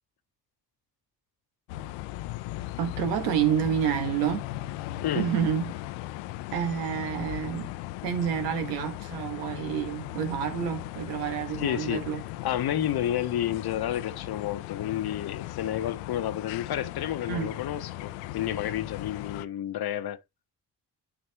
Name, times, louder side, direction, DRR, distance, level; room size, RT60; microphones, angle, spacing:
sound 1, 1.7-19.5, left 16 dB, 75° left, 0.6 m, -38 dB
voice 1, 2.8-4.4 5.1-5.7 6.5-7.7 8.0-12.2 17.3-17.5, right 9 dB, 85° right, 1.5 m, -28 dB
voice 2, 11.6-12.0 12.4-20.2, left 11 dB, 55° left, 1.0 m, -30 dB
11.0 x 4.1 x 2.9 m
hypercardioid pair, 45°, 46 cm